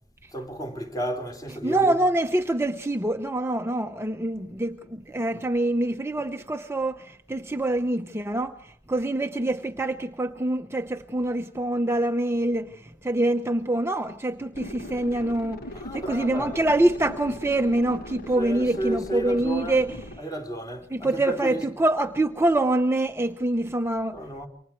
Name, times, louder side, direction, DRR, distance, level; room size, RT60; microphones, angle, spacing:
voice 1, 0.3-2.0 15.7-16.7 18.3-19.9 20.2-21.6 24.1-24.5, right 1 dB, 20° left, 3.8 m, -32 dB
voice 2, 1.6-20.0 20.9-24.2, right 1 dB, 15° right, 0.9 m, -25 dB
sound 1, 14.5-20.2, left 1 dB, 50° left, 1.6 m, -39 dB
28.5 x 24.5 x 4.6 m
head